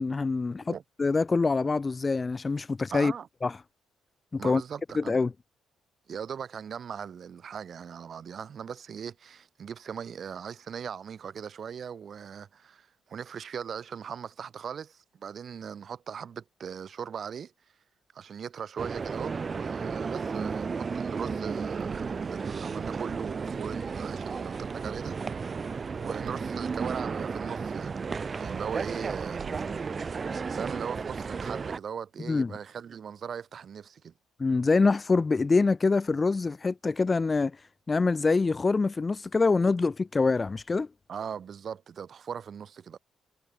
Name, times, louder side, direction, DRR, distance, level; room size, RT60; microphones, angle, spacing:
voice 1, 0.0-3.1 3.4-3.5 4.3-4.6 4.9-5.3 32.3-32.5 34.4-37.6 37.9-40.9, left 4 dB, 30° left, 0.3 m, -25 dB
voice 2, 2.9-3.3 4.4-5.2 6.1-17.5 18.1-25.4 26.0-28.0 28.4-29.6 30.5-34.1 41.1-43.0, right 7 dB, 50° right, 1.5 m, -39 dB
sound 1, 18.8-31.8, right 5 dB, 35° right, 0.4 m, -33 dB
Bark, 27.9-29.7, right 11 dB, 75° right, 0.9 m, -52 dB
cardioid pair, 90°, 0 cm